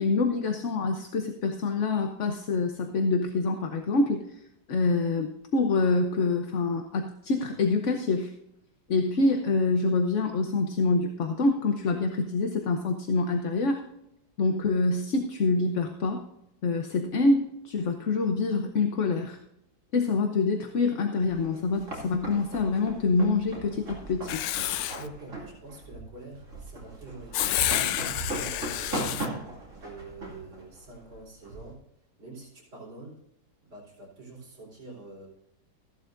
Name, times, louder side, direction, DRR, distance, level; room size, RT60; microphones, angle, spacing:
voice 1, 0.0-4.3 4.7-8.3 8.9-13.8 14.4-16.2 16.6-19.4 19.9-24.4, left 3 dB, 50° left, 4 dB, 1.0 m, -26 dB
sound 1, 21.3-31.7, right 2 dB, 45° right, 2.8 m, -38 dB
Writing, 24.3-25.1 27.3-29.3, left 13 dB, 90° left, 1.3 m, -29 dB
voice 2, 24.9-29.2 29.7-31.8 32.2-33.2 33.6-35.3, right 2 dB, 65° right, -2 dB, 4.8 m, -46 dB
15.0 x 11.5 x 2.6 m, 0.81 s
omnidirectional pair, 1.9 m